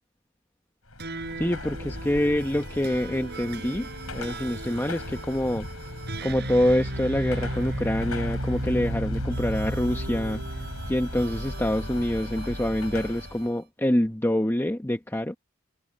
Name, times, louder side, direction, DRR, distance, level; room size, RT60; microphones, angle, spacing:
Car passing by / Traffic noise roadway noise / Engine, 0.9-13.5, left 1 dB, 75° left, 7.6 m, -37 dB
sound 1, 1.0-13.5, right 1 dB, 50° right, 7.4 m, -35 dB
voice 1, 1.4-5.7 6.2-10.6 10.9-15.4, left 1 dB, 10° left, 1.0 m, -26 dB
head